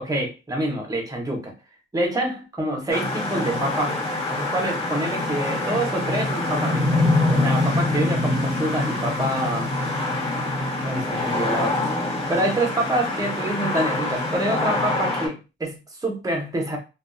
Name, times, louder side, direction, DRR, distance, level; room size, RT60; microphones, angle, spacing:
voice 1, 0.0-1.5 1.9-4.0 4.3-7.0 7.3-9.7 10.8-16.8, right 1 dB, 20° right, 2 dB, 0.9 m, -26 dB
sound 1, 2.9-15.3, left 2 dB, 30° left, 1.2 m, -25 dB
2.5 x 2.3 x 2.3 m, 0.29 s
cardioid pair, 90°, 20 cm